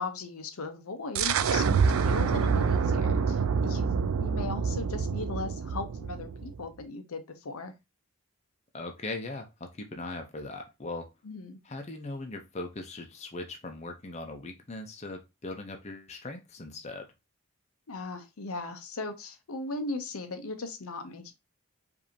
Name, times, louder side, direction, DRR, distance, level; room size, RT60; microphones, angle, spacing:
voice 1, 0.0-3.9 4.2-7.7 11.2-11.6 17.9-21.3, left 3 dB, 80° left, 0.7 m, -38 dB
sound 1, 1.2-6.7, right 5 dB, 75° right, 0.4 m, -27 dB
voice 2, 8.7-11.1 11.6-17.1, left 2 dB, 30° left, 0.6 m, -39 dB
5.1 x 2.7 x 2.7 m
head